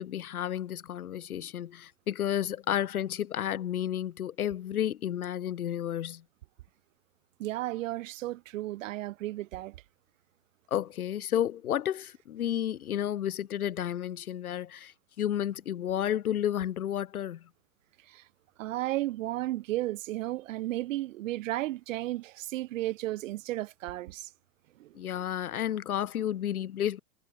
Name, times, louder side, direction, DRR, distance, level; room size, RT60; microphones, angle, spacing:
voice 1, 0.0-6.2 10.7-14.9 15.2-17.4 25.0-27.0, left 11 dB, 85° left, 2.3 m, -31 dB
voice 2, 7.4-9.8 18.1-18.2 18.6-24.3 24.8-25.2, right 16 dB, 65° right, 3.2 m, -34 dB
hypercardioid pair, 135°, 42 cm